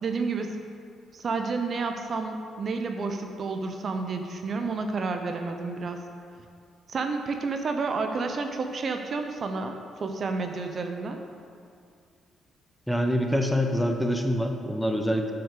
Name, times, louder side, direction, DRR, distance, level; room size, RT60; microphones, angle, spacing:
voice 1, 0.0-0.6 1.1-6.0 6.9-11.2, right 4 dB, 50° right, 5 dB, 0.7 m, -30 dB
voice 2, 12.9-15.3, equal, ahead, 3 dB, 0.9 m, -25 dB
7.2 x 5.8 x 6.6 m, 2.3 s
cardioid pair, 90°, 0 cm